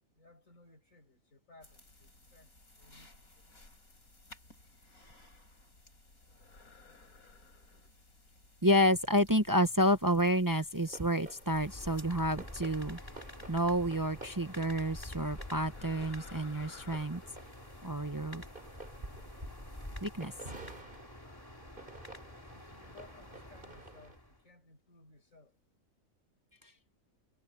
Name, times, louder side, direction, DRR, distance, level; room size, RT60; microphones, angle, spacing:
voice 1, 0.1-3.6 5.5-5.6 22.5-25.6, left 3 dB, 65° left, 6.2 m, -60 dB
sound 1, 1.6-20.8, left 2 dB, 80° left, 6.6 m, -57 dB
voice 2, 8.6-13.0 13.5-17.2 17.8-18.4 20.0-20.3, equal, 20° right, 0.7 m, -29 dB
sound 2, 10.7-24.2, right 2 dB, 35° right, 2.9 m, -52 dB
sound 3, 11.4-24.4, left 1 dB, 15° left, 2.4 m, -48 dB
omnidirectional pair, 1.5 m